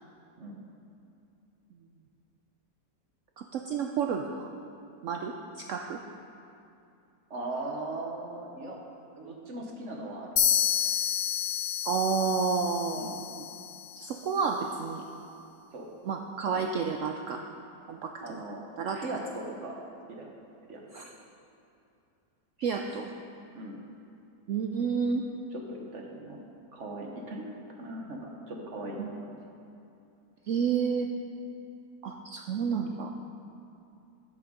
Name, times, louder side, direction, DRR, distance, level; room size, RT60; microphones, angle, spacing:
voice 1, 3.4-4.5 5.0-6.0 11.9-13.5 14.0-15.0 16.0-17.4 17.9-18.4 18.8-19.2 20.9-21.1 22.6-23.1 24.5-25.2 29.0-29.1 30.5-31.1 32.0-33.1, right 6 dB, 80° right, 3 dB, 0.6 m, -30 dB
voice 2, 7.3-8.8 9.1-10.3 13.0-13.2 15.7-15.9 16.5-16.7 18.2-18.6 18.9-19.8 20.1-20.3 20.7-20.8 23.5-23.8 25.5-26.4 26.7-27.5 27.8-29.4, right 2 dB, 50° right, 0 dB, 1.2 m, -39 dB
sound 1, 10.4-14.1, left 10 dB, 65° left, 0.9 m, -30 dB
12.5 x 6.1 x 5.1 m, 2.7 s
omnidirectional pair, 1.9 m